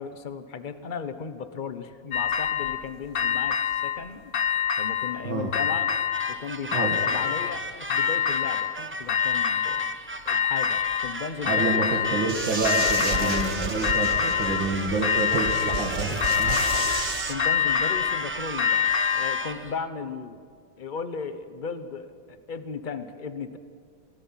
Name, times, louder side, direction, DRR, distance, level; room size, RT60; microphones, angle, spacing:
voice 1, 0.0-5.9 6.3-9.9 10.2-11.8 13.1-13.5 16.4-17.0 17.3-20.4 20.8-23.6, left 5 dB, 35° left, 11 dB, 0.9 m, -36 dB
sound 1, 2.1-2.8 3.2-4.0 4.3-5.2 5.5-6.4 6.7-7.6 7.9-8.8 9.1-9.9 10.3-11.1 11.5-12.3 12.6-13.5 13.8-14.7 15.0-15.9 16.2-17.1 17.4-19.4, left 8 dB, 55° left, 1.4 m, -25 dB
sound 2, 6.1-19.8, right 2 dB, 15° right, 0.5 m, -35 dB
voice 2, 11.5-16.6, right 3 dB, 90° right, -1 dB, 2.7 m, -28 dB
sound 3, 12.3-17.3, right 3 dB, 40° right, 1.8 m, -32 dB
27.5 x 19.5 x 5.8 m, 2.1 s
omnidirectional pair, 2.0 m